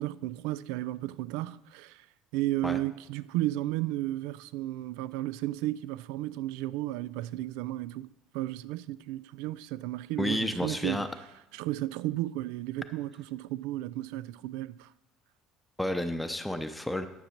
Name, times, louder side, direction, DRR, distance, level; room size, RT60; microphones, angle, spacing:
voice 1, 0.0-2.1 2.3-8.1 8.3-11.0 11.5-14.9, right 15 dB, 80° right, 0.3 m, -33 dB
voice 2, 10.2-11.1 15.8-17.1, left 1 dB, 5° left, 0.6 m, -31 dB
10.5 x 6.1 x 6.5 m
supercardioid pair, 105°, 0 cm